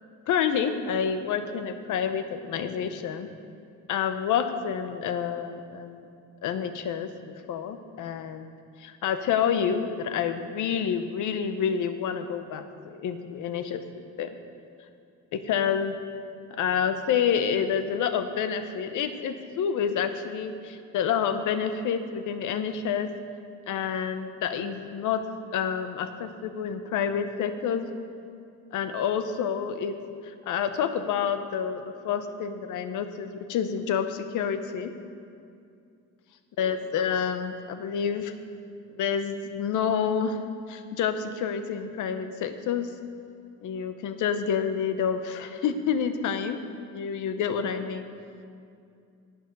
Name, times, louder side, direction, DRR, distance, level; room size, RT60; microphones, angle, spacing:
voice 1, 0.3-3.3 3.9-6.1 6.4-8.5 8.8-13.8 14.2-14.3 15.3-15.9 16.6-23.1 23.7-25.2 25.5-27.9 28.7-30.0 30.2-34.9 36.6-38.3 39.0-40.4 40.7-42.9 43.6-46.6 46.8-48.0, left 7 dB, 80° left, 9 dB, 0.9 m, -28 dB
11.0 x 9.3 x 5.3 m, 2.4 s
cardioid pair, 90°, 30 cm